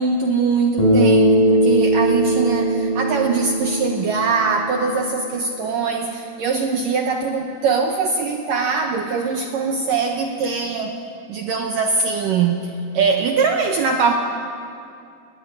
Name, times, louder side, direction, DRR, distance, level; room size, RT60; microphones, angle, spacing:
voice 1, 0.0-10.9 11.3-14.1, right 5 dB, 85° right, 3 dB, 1.9 m, -22 dB
Bass guitar, 0.8-5.2, right 1 dB, 45° left, 8.4 m, -19 dB
21.5 x 21.0 x 9.6 m, 2.5 s
omnidirectional pair, 5.7 m